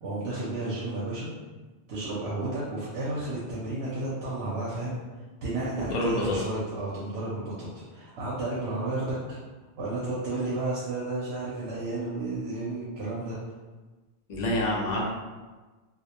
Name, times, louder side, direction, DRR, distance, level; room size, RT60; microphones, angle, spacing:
voice 1, 0.0-1.3 1.9-5.0 5.4-9.4 9.8-13.4, right 2 dB, 75° right, -6 dB, 0.8 m, -32 dB
voice 2, 5.8-6.5 14.3-15.2, left 1 dB, 50° left, -3 dB, 0.6 m, -27 dB
2.2 x 2.1 x 2.8 m, 1.3 s
omnidirectional pair, 1.1 m